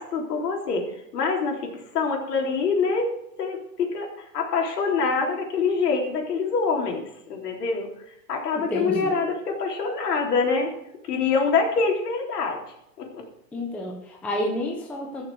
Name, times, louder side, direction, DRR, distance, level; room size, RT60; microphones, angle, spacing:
voice 1, 0.0-3.1 3.4-7.9 8.3-10.7 11.1-12.6 13.0-13.3, left 4 dB, 65° left, 1 dB, 3.7 m, -25 dB
voice 2, 8.7-9.1 13.5-15.2, left 1 dB, 5° left, -1 dB, 0.7 m, -29 dB
14.0 x 6.9 x 6.4 m, 0.80 s
hypercardioid pair, 150°, 50 cm